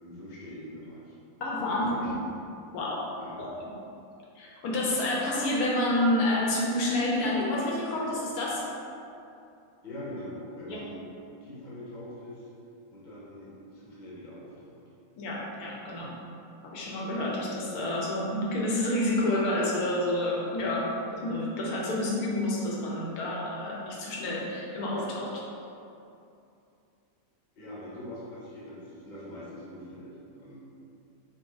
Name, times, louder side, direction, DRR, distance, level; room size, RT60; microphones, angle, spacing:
voice 1, 0.0-1.2 1.6-2.3 3.2-3.3 9.8-11.0 11.4-12.5 12.9-14.8 27.6-30.6, left 1 dB, 35° left, -8 dB, 0.8 m, -43 dB
voice 2, 1.4-2.1 2.7-3.1 3.4-3.5 4.4-8.6 10.7-10.8 15.2-16.1 16.6-25.4, left 1 dB, 70° left, -3 dB, 1.1 m, -29 dB
2.7 x 2.5 x 3.8 m, 2.6 s
omnidirectional pair, 1.7 m